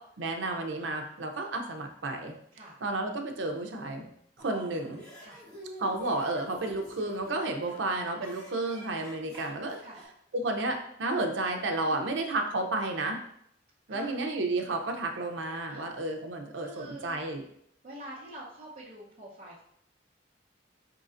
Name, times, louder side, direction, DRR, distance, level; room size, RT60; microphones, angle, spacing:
voice 1, 0.2-2.3 2.8-4.1 4.4-5.0 5.8-9.8 10.3-13.2 13.9-17.4, right 2 dB, 80° right, 4 dB, 0.6 m, -32 dB
sound 1, 4.4-10.0, right 1 dB, 5° left, 1.3 m, -48 dB
voice 2, 7.5-7.8 9.8-10.0 11.8-12.2 13.9-14.1 15.7-15.9 16.6-17.2 17.8-19.6, right 1 dB, 40° right, -9 dB, 0.8 m, -46 dB
4.8 x 3.8 x 2.5 m, 0.71 s
head